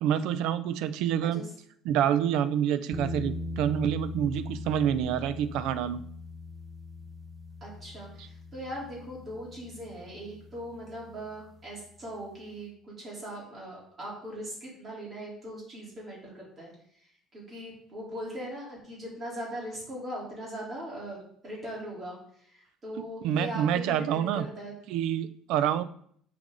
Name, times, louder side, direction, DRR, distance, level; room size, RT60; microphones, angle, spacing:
voice 1, 0.0-1.4 1.8-6.0 8.2-8.3 23.0-24.5 24.9-25.8, right 9 dB, 75° right, 14 dB, 0.5 m, -27 dB
sound 1, 2.9-11.8, left 2 dB, ahead, 1.0 m, -41 dB
voice 2, 7.6-16.7 17.3-24.7, equal, 25° right, -4 dB, 3.5 m, -40 dB
10.5 x 5.2 x 3.9 m, 0.63 s
cardioid pair, 155°, 0 cm